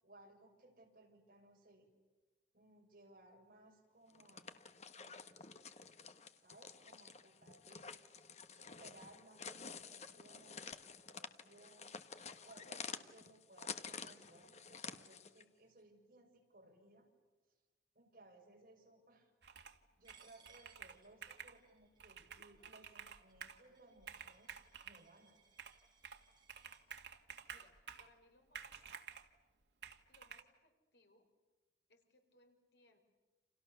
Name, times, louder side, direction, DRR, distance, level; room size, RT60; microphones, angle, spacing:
voice 1, 0.0-1.9 2.5-4.6 4.9-5.4 6.4-7.9 8.5-11.9 12.4-17.1 17.9-19.3 20.0-24.5 24.8-25.4, right 2 dB, 50° right, 1 dB, 6.7 m, -63 dB
sound 1, 4.1-15.4, left 6 dB, 40° left, 1.3 m, -50 dB
Computer keyboard, 19.4-19.8 20.1-21.6 22.0-23.6 24.0-25.0 25.6-26.2 26.5-28.1 28.5-29.3 29.8-30.4, right 7 dB, 80° right, 2.0 m, -52 dB
Coin (dropping), 20.0-26.8, right 6 dB, 25° right, 7.1 m, -68 dB
voice 2, 27.5-28.9 30.1-31.3 31.9-33.0, left 2 dB, 75° left, 4 dB, 5.3 m, -70 dB
30.0 x 28.5 x 7.0 m, 1.2 s
head